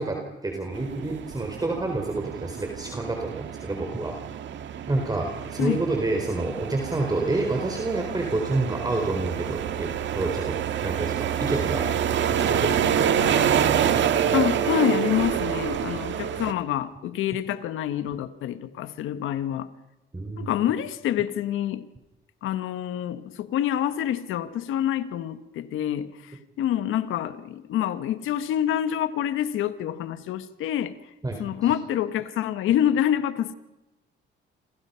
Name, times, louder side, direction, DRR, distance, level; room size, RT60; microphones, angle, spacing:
voice 1, 0.0-4.2 4.9-11.9 12.3-13.7 20.1-20.5 31.2-31.4, right 2 dB, 20° right, 4.3 m, -29 dB
sound 1, 0.7-16.5, right 9 dB, 70° right, 1.8 m, -27 dB
voice 2, 14.3-19.7 20.4-21.8 22.4-30.9 31.4-33.5, left 11 dB, 85° left, 1.4 m, -27 dB
28.5 x 26.0 x 5.8 m
cardioid pair, 90°, 20 cm